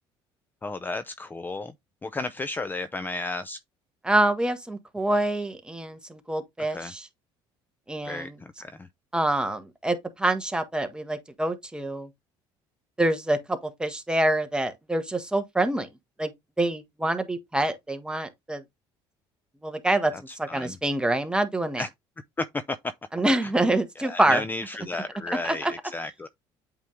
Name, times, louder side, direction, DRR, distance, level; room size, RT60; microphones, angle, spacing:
voice 1, 0.6-1.7 2.0-3.6 6.7-6.9 8.0-8.9 20.1-20.8 21.8-21.9 22.4-22.8 23.4-23.5 24.0-26.3, left 3 dB, 20° left, 0.5 m, -33 dB
voice 2, 4.0-7.1 7.9-8.3 9.1-12.1 13.0-15.9 16.2-16.3 16.6-18.6 19.6-21.8 23.1-24.4 25.4-25.7, right 1 dB, 10° right, 1.4 m, -26 dB
8.3 x 3.6 x 3.2 m
supercardioid pair, 90°, 10 cm